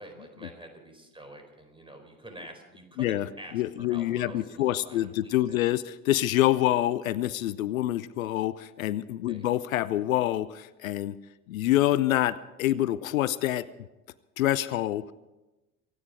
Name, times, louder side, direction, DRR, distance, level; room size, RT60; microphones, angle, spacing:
voice 1, 0.0-5.6 9.3-9.5, right 1 dB, 10° right, 5 dB, 4.3 m, -47 dB
voice 2, 3.5-11.2 11.5-13.7 14.4-15.1, left 14 dB, 75° left, 19 dB, 0.6 m, -26 dB
25.0 x 9.7 x 4.9 m, 1.0 s
figure-of-eight pair, 60°, 41 cm